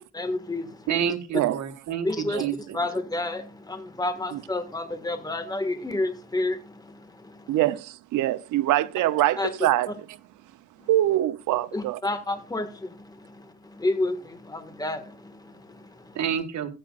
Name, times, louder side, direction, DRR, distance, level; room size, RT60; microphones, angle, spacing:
voice 1, 0.0-0.9 2.0-2.4 2.7-7.6 9.4-9.5 11.7-16.2, left 2 dB, 10° left, 1.9 m, -30 dB
voice 2, 0.9-2.8 16.2-16.7, right 8 dB, 65° right, 2.0 m, -29 dB
voice 3, 7.5-10.1 10.9-12.0, right 14 dB, 85° right, 0.8 m, -24 dB
16.0 x 8.6 x 2.5 m
cardioid pair, 90°, 30 cm